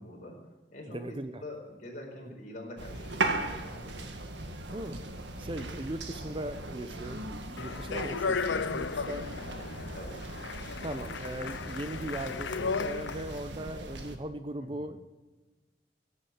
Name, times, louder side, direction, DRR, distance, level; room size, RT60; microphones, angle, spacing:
voice 1, 0.0-1.0 1.4-4.1 9.9-10.2 14.6-14.9, left 1 dB, 45° left, 0 dB, 4.6 m, -45 dB
voice 2, 0.9-1.4 4.7-5.0 5.4-9.3 10.8-15.0, right 1 dB, 30° right, 10 dB, 0.8 m, -39 dB
sound 1, 2.8-14.2, right 2 dB, 80° right, 1.7 m, -38 dB
Speech, 7.6-13.4, left 5 dB, 90° left, 0.6 m, -35 dB
17.0 x 8.6 x 7.4 m, 1.2 s
head